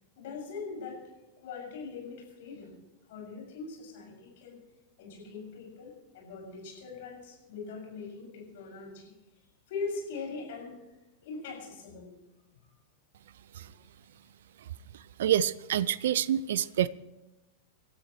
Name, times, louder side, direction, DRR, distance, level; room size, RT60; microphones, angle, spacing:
voice 1, 0.2-1.0 1.4-2.7 3.1-4.6 5.0-9.1 9.7-10.8 11.2-12.1, left 4 dB, 55° left, -1 dB, 6.8 m, -41 dB
voice 2, 14.9-16.9, right 10 dB, 60° right, 20 dB, 0.4 m, -27 dB
28.5 x 12.5 x 3.2 m, 1.1 s
figure-of-eight pair, 90°, 0 cm